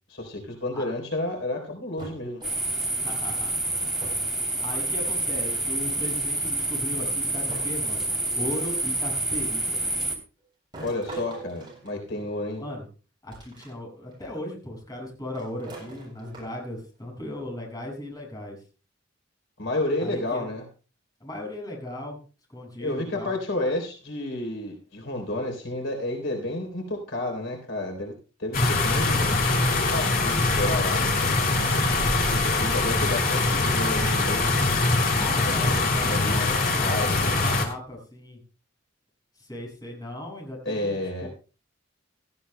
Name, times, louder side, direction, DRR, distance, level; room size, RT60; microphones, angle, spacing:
voice 1, 0.1-2.4 10.8-12.7 19.6-20.7 22.8-28.1 28.4-29.4 29.7-31.0 32.1-34.5 35.4-35.8 36.1-37.4 40.7-41.3, left 1 dB, 80° left, 3 dB, 3.6 m, -31 dB
sound 1, 2.0-2.9 4.0-4.3 4.6-5.2 6.3-6.4 7.5-8.8 10.7-12.6 13.3-13.7 14.1-14.2 15.3-16.8, right 2 dB, 25° right, 8.0 m, -43 dB
sound 2, 2.4-10.2, right 2 dB, 5° right, 3.1 m, -28 dB
voice 2, 3.0-3.6 4.2-9.8 12.6-12.9 13.2-18.6 20.0-20.5 21.2-22.2 22.5-23.4 35.1-38.4 39.4-41.3, left 1 dB, 20° left, -1 dB, 6.2 m, -37 dB
sound 3, 28.5-37.7, left 3 dB, 50° left, 2.9 m, -23 dB
17.5 x 14.5 x 2.2 m, 0.35 s
head